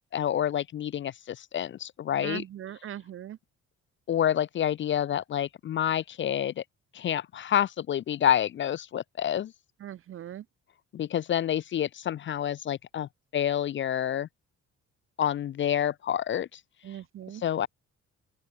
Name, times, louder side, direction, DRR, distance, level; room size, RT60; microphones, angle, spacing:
voice 1, 0.1-2.4 4.1-6.6 6.9-9.5 10.9-14.3 15.2-16.6 17.3-17.7, left 10 dB, 40° left, 0.4 m, -28 dB
voice 2, 2.2-3.4 9.8-10.4 16.9-17.4, right 11 dB, 45° right, 0.5 m, -40 dB
open air
cardioid pair, 90°, 30 cm